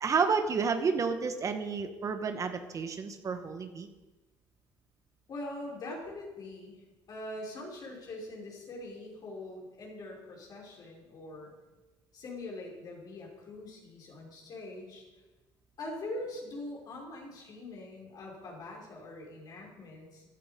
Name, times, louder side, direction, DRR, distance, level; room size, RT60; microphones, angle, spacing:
voice 1, 0.0-3.9, right 5 dB, 40° right, 7 dB, 1.4 m, -30 dB
voice 2, 5.3-11.5 12.1-15.0 15.8-20.2, left 2 dB, 50° left, -2 dB, 5.4 m, -43 dB
14.5 x 12.0 x 5.3 m, 1.2 s
cardioid pair, 95°, 8 cm